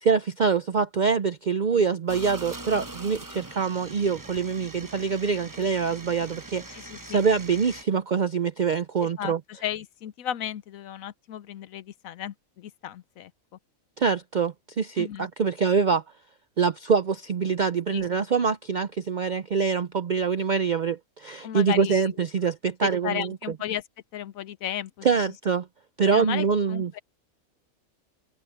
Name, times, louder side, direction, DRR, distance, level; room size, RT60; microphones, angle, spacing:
voice 1, 0.0-9.4 14.0-16.0 16.6-23.3 25.0-25.7 26.0-26.9, right 5 dB, 70° right, 0.4 m, -25 dB
sound 1, 2.1-7.8, right 2 dB, 15° right, 0.8 m, -42 dB
voice 2, 6.7-7.2 9.0-13.3 15.0-15.3 17.9-18.1 21.4-22.2 22.8-23.8 24.1-25.1 26.1-27.0, left 10 dB, 75° left, 1.1 m, -34 dB
open air
omnidirectional pair, 1.5 m